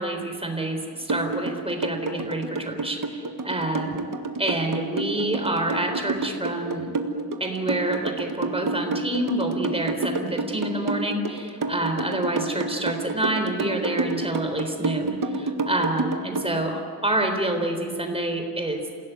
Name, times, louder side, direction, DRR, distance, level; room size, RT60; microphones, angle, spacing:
voice 1, 0.0-3.9 4.4-6.9 7.4-18.8, right 1 dB, 15° right, 4 dB, 3.8 m, -27 dB
sound 1, 1.1-16.5, right 3 dB, 60° right, 1.7 m, -28 dB
28.0 x 17.0 x 9.3 m, 2.3 s
wide cardioid pair, 140°, 37 cm